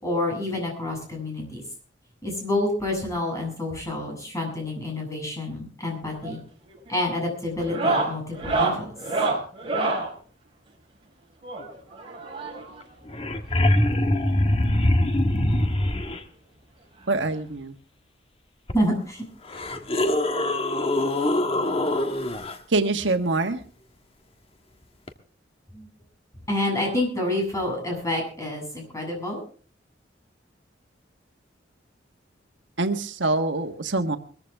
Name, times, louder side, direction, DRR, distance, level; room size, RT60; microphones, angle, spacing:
voice 1, 0.0-1.6 2.2-6.4 6.9-8.9 18.7-19.2 19.5-19.6 25.7-25.9 26.5-29.4, left 1 dB, 15° left, 0 dB, 7.8 m, -28 dB
sound 1, 6.0-6.4 6.7-7.0 7.6-10.1 11.4-12.8 13.8-13.9 14.2-14.3 14.7-14.8 16.1-16.2 17.5-17.6, right 3 dB, 30° right, 5.1 m, -27 dB
sound 2, 12.8-12.9 13.1-16.2 18.7-18.8 19.4-22.6 25.1-25.2, left 1 dB, 35° left, 1.5 m, -23 dB
voice 2, 17.1-17.8 22.7-23.6 32.8-34.2, right 2 dB, 80° right, 7 dB, 1.4 m, -24 dB
22.0 x 14.5 x 3.5 m, 0.41 s
head